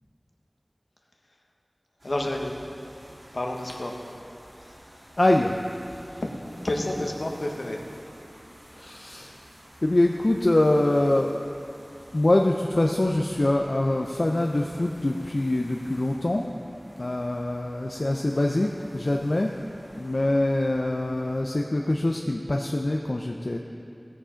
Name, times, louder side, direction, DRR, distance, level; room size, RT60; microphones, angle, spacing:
voice 1, 2.0-2.7 3.3-4.0 4.5-5.0 6.2-6.3 6.6-7.8, left 1 dB, 80° left, 1 dB, 1.2 m, -30 dB
sound 1, 2.0-21.4, equal, 80° right, 3.2 m, -50 dB
voice 2, 5.2-6.2 8.7-9.4 9.8-11.4 12.1-16.5 17.0-19.6 20.0-23.6, left 1 dB, 65° left, 1 dB, 0.6 m, -24 dB
16.0 x 7.4 x 5.1 m, 2.5 s
wide cardioid pair, 45°, 0 cm